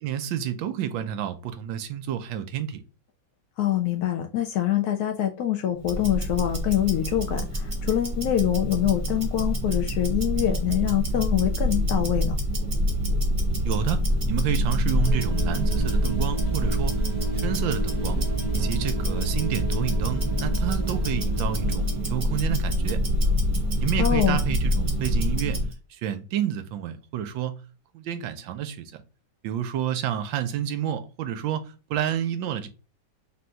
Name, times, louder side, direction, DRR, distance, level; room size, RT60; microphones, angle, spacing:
voice 1, 0.0-2.8 13.6-14.0 14.3-16.9 17.4-18.2 18.5-23.0 23.8-25.6 25.9-27.6 27.9-29.0 29.4-32.7, right 10 dB, 75° right, 1.2 m, -29 dB
voice 2, 3.6-12.4 24.0-24.4, left 11 dB, 85° left, 0.8 m, -25 dB
Tick-tock, 5.8-25.7, equal, 20° right, 0.9 m, -26 dB
sound 1, 15.0-23.8, right 4 dB, 25° left, 1.0 m, -33 dB
3.6 x 2.6 x 4.3 m
omnidirectional pair, 2.2 m